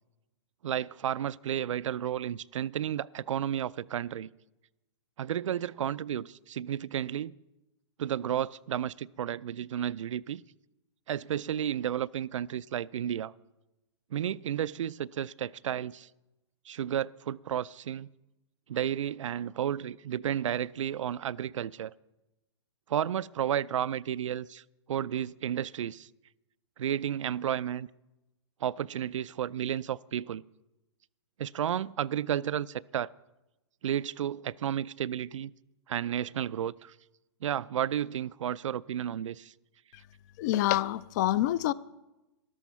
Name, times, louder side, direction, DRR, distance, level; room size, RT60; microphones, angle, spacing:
voice 1, 0.6-4.3 5.2-7.3 8.0-10.4 11.1-13.3 14.1-16.1 16.7-18.1 18.7-21.9 22.9-24.6 24.9-26.1 26.8-27.9 28.6-30.4 31.4-33.1 33.8-35.5 35.9-36.9 37.4-39.5, right 10 dB, 85° right, 0.4 m, -32 dB
voice 2, 40.4-41.7, left 14 dB, 35° left, 0.4 m, -26 dB
13.5 x 11.5 x 5.6 m
hypercardioid pair, 145°, 16 cm